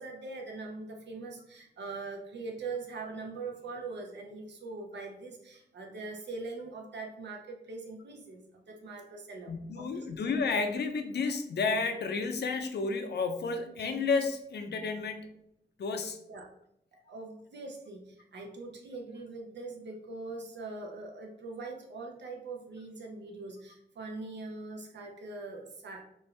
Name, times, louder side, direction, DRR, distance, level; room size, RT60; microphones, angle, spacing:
voice 1, 0.0-10.1 16.3-16.5 16.9-26.0, right 3 dB, 90° right, 1 dB, 0.8 m, -42 dB
voice 2, 9.5-15.3 15.8-16.2, left 4 dB, 75° left, 7 dB, 0.6 m, -31 dB
4.4 x 2.6 x 3.2 m, 0.75 s
wide cardioid pair, 160°, 18 cm